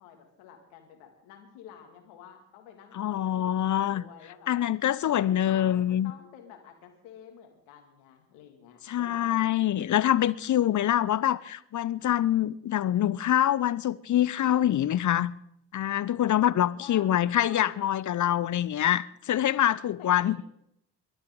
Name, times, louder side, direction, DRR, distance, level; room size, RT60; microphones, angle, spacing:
voice 1, 0.0-4.6 5.1-9.4 16.7-17.1 17.4-17.7 20.0-20.4, left 8 dB, 70° left, 2.6 m, -49 dB
voice 2, 2.9-4.0 4.5-6.1 8.9-15.3 15.7-20.4, left 11 dB, 35° left, 0.6 m, -25 dB
26.0 x 12.5 x 3.7 m
figure-of-eight pair, 40°, 50 cm